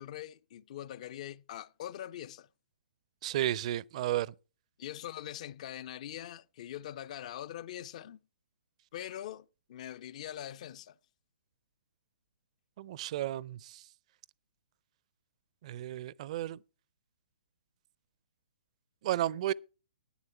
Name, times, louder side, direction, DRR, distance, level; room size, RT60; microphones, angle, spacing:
voice 1, 0.0-2.5 4.8-8.2 8.9-11.0, left 11 dB, 45° left, 0.5 m, -43 dB
voice 2, 3.2-4.3 12.8-13.8 15.6-16.6 19.0-19.5, right 13 dB, 45° right, 0.5 m, -33 dB
11.0 x 9.7 x 4.4 m
figure-of-eight pair, 130°, 5 cm